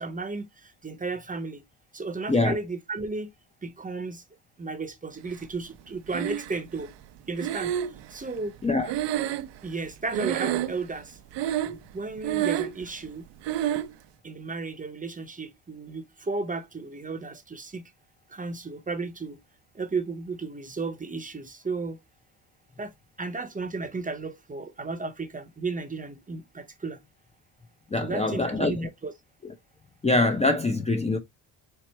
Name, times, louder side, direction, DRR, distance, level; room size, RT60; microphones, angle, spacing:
voice 1, 0.0-1.6 1.9-3.3 3.6-4.2 4.6-6.9 7.3-8.6 9.6-11.2 11.9-13.3 14.2-17.9 18.3-19.4 19.7-22.0 22.8-22.9 23.2-27.0 28.0-29.1, right 3 dB, 20° right, 0.8 m, -34 dB
Breathing, 6.1-6.8 7.4-9.9 10.1-10.9 11.3-11.9 12.2-12.8 13.4-13.9, right 12 dB, 70° right, 0.6 m, -29 dB
voice 2, 27.9-28.9 30.0-31.2, left 2 dB, 15° left, 0.5 m, -24 dB
4.5 x 2.1 x 4.2 m
cardioid pair, 95°, 45 cm